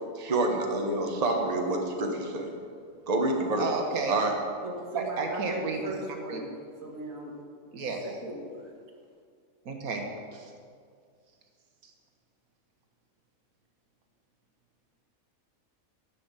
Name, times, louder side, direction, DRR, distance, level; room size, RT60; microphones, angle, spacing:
voice 1, 0.2-2.5 3.1-3.6 4.1-4.3, right 2 dB, 30° right, 2 dB, 1.1 m, -27 dB
voice 2, 3.6-4.2 4.9-5.8 6.3-6.4 7.7-8.0 9.6-10.5 11.8-11.9, right 4 dB, 85° right, 2 dB, 1.5 m, -32 dB
voice 3, 4.6-6.6 6.8-7.4 8.0-8.8, right 1 dB, 70° right, -1 dB, 2.1 m, -38 dB
10.5 x 5.9 x 8.0 m, 2.1 s
omnidirectional pair, 1.5 m